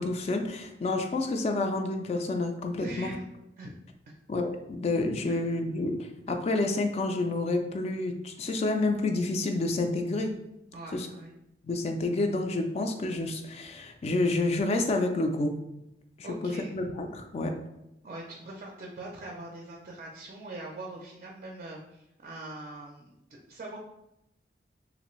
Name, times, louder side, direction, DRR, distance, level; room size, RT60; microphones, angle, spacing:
voice 1, 0.0-3.1 4.3-10.3 10.9-11.1 11.6-15.5 16.4-17.5, left 2 dB, 35° left, 5 dB, 0.3 m, -29 dB
voice 2, 2.8-3.2 3.6-3.7 4.1-4.2 5.3-5.4 10.7-11.3 16.2-16.7 18.0-23.8, right 2 dB, 40° right, -1 dB, 0.4 m, -42 dB
3.2 x 2.5 x 3.0 m, 0.86 s
head